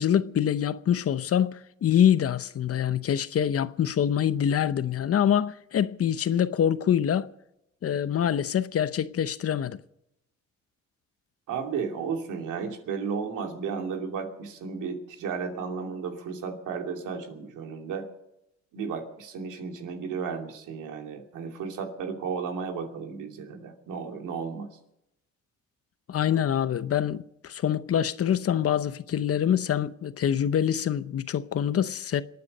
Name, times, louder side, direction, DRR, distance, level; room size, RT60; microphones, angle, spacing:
voice 1, 0.0-7.3 7.8-9.8 26.1-32.2, left 9 dB, 50° left, 0.8 m, -25 dB
voice 2, 11.5-18.1 18.7-24.7, right 6 dB, 85° right, 2.7 m, -34 dB
26.5 x 9.5 x 5.4 m
cardioid pair, 90°, 30 cm